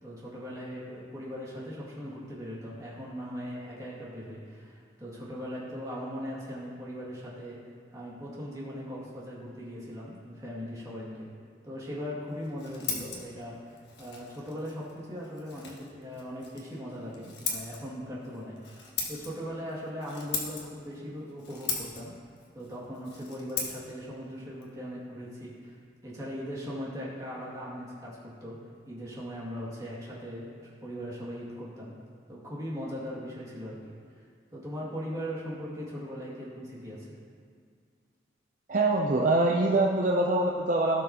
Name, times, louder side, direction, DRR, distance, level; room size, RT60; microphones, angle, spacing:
voice 1, 0.0-7.6 7.9-11.3 11.6-22.1 22.5-25.8 26.0-28.6 28.9-31.9 32.3-33.8 34.5-37.2, equal, 20° right, -7 dB, 2.3 m, -39 dB
Scissors, 12.3-25.8, left 5 dB, 70° left, 1.5 m, -40 dB
voice 2, 38.7-41.0, right 2 dB, 45° right, -1 dB, 0.5 m, -24 dB
16.5 x 6.3 x 2.9 m, 2.1 s
head